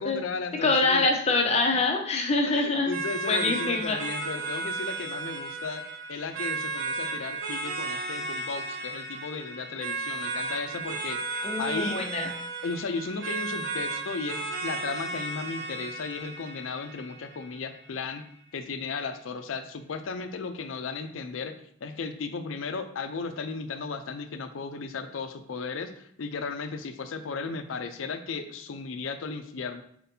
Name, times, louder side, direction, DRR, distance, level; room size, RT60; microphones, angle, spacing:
voice 1, 0.0-1.1 2.5-5.8 6.1-11.2 11.6-12.0 12.6-18.2 18.5-21.5 21.8-29.8, left 4 dB, 90° left, 8 dB, 0.5 m, -35 dB
voice 2, 0.6-2.9 3.3-4.0 11.4-12.3, left 3 dB, 35° left, 2 dB, 0.7 m, -25 dB
sound 1, 2.9-17.9, right 3 dB, 75° right, 0.8 m, -34 dB
4.4 x 4.1 x 2.7 m, 0.64 s
head